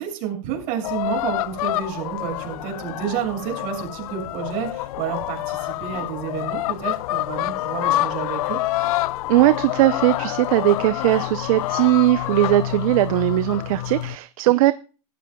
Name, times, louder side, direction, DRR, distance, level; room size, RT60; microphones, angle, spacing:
voice 1, 0.0-8.6, right 9 dB, 45° right, 6.5 m, -30 dB
sound 1, 0.8-14.2, left 16 dB, 60° left, 0.5 m, -27 dB
voice 2, 9.3-14.7, right 16 dB, 60° right, 0.7 m, -19 dB
17.0 x 13.5 x 2.3 m
supercardioid pair, 140°, 20 cm